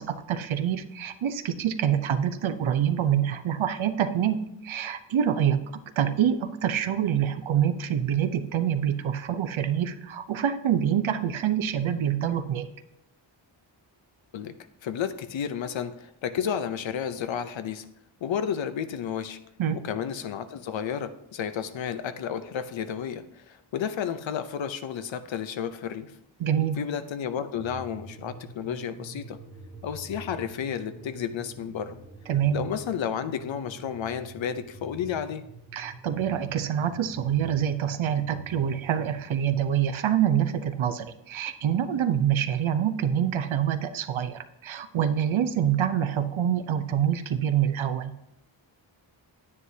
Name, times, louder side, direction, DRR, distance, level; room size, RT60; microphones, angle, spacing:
voice 1, 0.0-4.4 4.6-5.6 6.0-12.7 19.6-19.8 26.4-26.8 32.3-32.6 35.7-48.1, right 9 dB, 75° right, 10 dB, 0.8 m, -26 dB
voice 2, 14.8-17.9 18.2-19.4 19.7-26.1 26.8-29.4 29.8-32.0 32.5-35.4, left 8 dB, 70° left, 11 dB, 0.8 m, -32 dB
sound 1, 27.6-39.2, right 2 dB, 10° right, 1.4 m, -46 dB
9.8 x 9.3 x 2.8 m, 0.83 s
wide cardioid pair, 100°, 47 cm